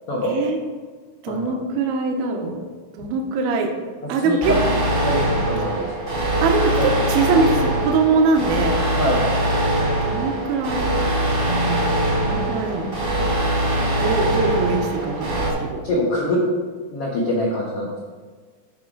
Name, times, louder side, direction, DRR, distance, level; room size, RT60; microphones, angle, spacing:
voice 1, 0.2-0.6 1.2-2.6 2.9-3.7 4.1-4.5 5.1-5.3 6.4-8.8 10.0-10.9 11.5-11.8 12.2-12.9 14.0-15.8, right 4 dB, 75° right, 2 dB, 2.6 m, -22 dB
sound 1, 4.4-15.5, right 1 dB, 30° right, 1.0 m, -22 dB
voice 2, 5.0-5.9 6.8-6.9 9.0-9.2 15.8-16.4 16.9-18.0, left 1 dB, 80° left, -4 dB, 1.3 m, -24 dB
13.5 x 4.8 x 3.9 m, 1.5 s
omnidirectional pair, 4.7 m